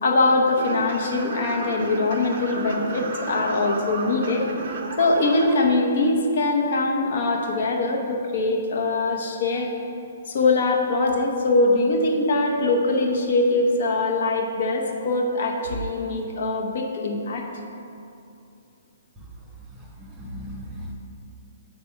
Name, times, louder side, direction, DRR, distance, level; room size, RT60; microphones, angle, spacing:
voice 1, 0.0-4.5 5.0-9.7 10.3-17.5, left 2 dB, 50° left, 1 dB, 0.9 m, -22 dB
sound 1, 0.6-5.5, right 3 dB, 40° right, 0.8 m, -33 dB
voice 2, 19.7-20.9, equal, 5° right, -3 dB, 0.5 m, -38 dB
9.7 x 4.2 x 4.5 m, 2.7 s
hypercardioid pair, 175°, 0 cm